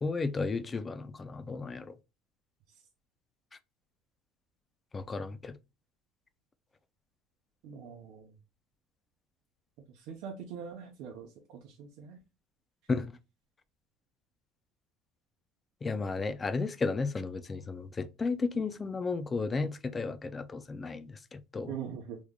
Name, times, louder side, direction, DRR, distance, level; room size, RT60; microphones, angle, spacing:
voice 1, 0.0-1.9 4.9-5.5 12.9-13.1 15.8-21.7, left 4 dB, 20° left, 0.4 m, -33 dB
voice 2, 7.6-8.3 10.0-12.2 18.5-18.6 21.7-22.2, right 7 dB, 65° right, 0.7 m, -43 dB
3.6 x 3.1 x 2.2 m
cardioid pair, 150°, 0 cm